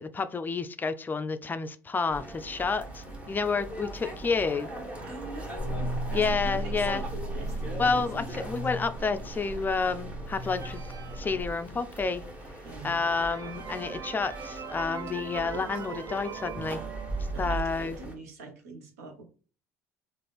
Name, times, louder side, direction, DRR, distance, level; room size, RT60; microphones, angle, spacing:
voice 1, 0.0-4.7 6.1-7.0 7.8-10.8 11.2-12.2 12.8-16.8 17.4-18.0, left 4 dB, 25° left, 10 dB, 0.4 m, -30 dB
sound 1, 2.1-18.1, right 2 dB, 15° right, 1.3 m, -40 dB
voice 2, 5.0-8.5 12.6-13.0 15.4-15.7 17.3-19.2, right 2 dB, 80° right, 4 dB, 0.9 m, -44 dB
sound 2, 5.6-11.4, right 1 dB, 5° left, 0.9 m, -35 dB
sound 3, 10.4-12.0 12.6-12.7 13.0-17.6, right 7 dB, 40° right, 0.6 m, -41 dB
3.7 x 2.5 x 3.4 m, 0.38 s
hypercardioid pair, 65°, 8 cm